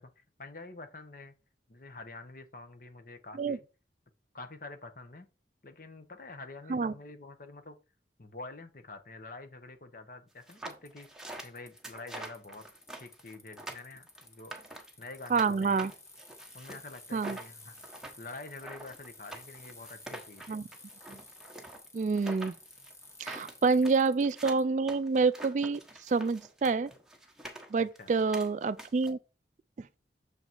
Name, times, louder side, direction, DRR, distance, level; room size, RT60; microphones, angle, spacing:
voice 1, 0.0-1.4 1.7-3.7 4.3-5.3 5.6-7.8 8.2-11.1 11.4-12.6 12.9-14.5 15.0-15.9 16.5-17.7 18.2-20.6 23.7-23.9 28.0-28.1, left 3 dB, 50° left, 1.0 m, -47 dB
sound 1, 10.4-15.5 15.8-29.1, right 1 dB, 5° right, 1.1 m, -46 dB
Bicycle, 10.5-24.6, left 2 dB, 15° left, 1.0 m, -54 dB
voice 2, 15.3-15.9 17.1-17.4 20.5-20.6 21.1-21.2 21.9-22.5 23.2-25.8 26.1-26.9 27.7-29.2, right 4 dB, 40° right, 0.3 m, -27 dB
7.0 x 4.0 x 4.5 m
head